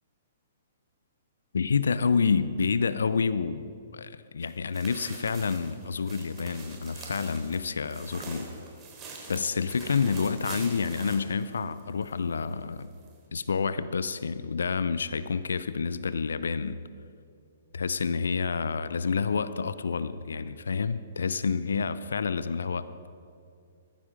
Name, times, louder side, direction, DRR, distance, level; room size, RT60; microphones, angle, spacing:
voice 1, 1.5-8.6 9.3-12.9 13.3-16.8 17.7-22.9, left 5 dB, 70° left, 15 dB, 0.6 m, -28 dB
sound 1, 4.4-12.1 12.4-12.5 13.0-13.1, right 3 dB, 25° right, 3.8 m, -44 dB
20.0 x 14.5 x 5.0 m, 2.4 s
figure-of-eight pair, 120°, 0 cm